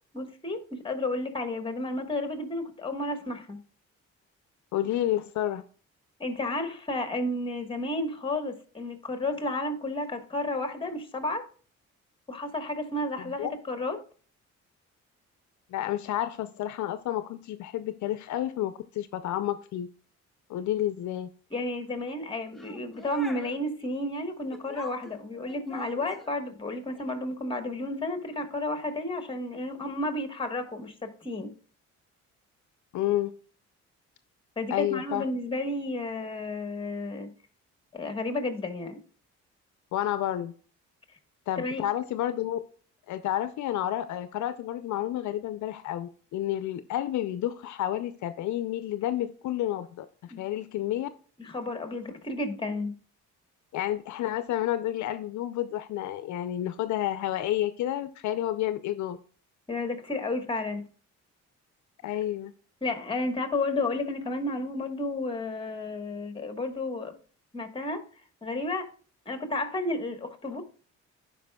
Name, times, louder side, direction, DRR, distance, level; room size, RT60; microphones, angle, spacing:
voice 1, 0.1-3.6 6.2-11.5 12.3-14.0 21.5-31.5 34.6-37.3 37.9-39.0 41.6-41.9 50.3-50.4 51.4-52.9 59.7-60.8 62.8-67.1 67.5-68.0 68.4-68.9 69.3-70.6, left 2 dB, 15° left, 1.3 m, -32 dB
voice 2, 4.7-5.6 13.4-13.5 15.7-19.9 20.5-21.3 32.9-33.3 34.7-35.2 39.9-40.5 41.5-42.6 43.1-50.1 50.4-51.1 53.7-59.2 62.0-62.5, left 12 dB, 70° left, 0.5 m, -30 dB
sound 1, 22.5-23.6 24.5-26.4 27.0-27.1, left 2 dB, ahead, 0.9 m, -45 dB
11.5 x 4.9 x 2.3 m
cardioid pair, 90°, 30 cm